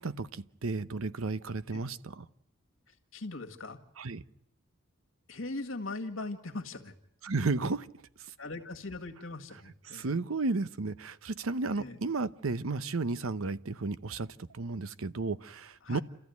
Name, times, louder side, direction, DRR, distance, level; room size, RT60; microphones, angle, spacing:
voice 1, 0.0-2.3 4.0-4.2 7.2-7.9 9.9-16.0, right 3 dB, 80° right, 0.8 m, -33 dB
voice 2, 3.1-3.8 5.3-6.9 8.4-10.1 11.8-12.0 15.8-16.0, left 2 dB, 70° left, 1.9 m, -40 dB
30.0 x 14.0 x 9.4 m
head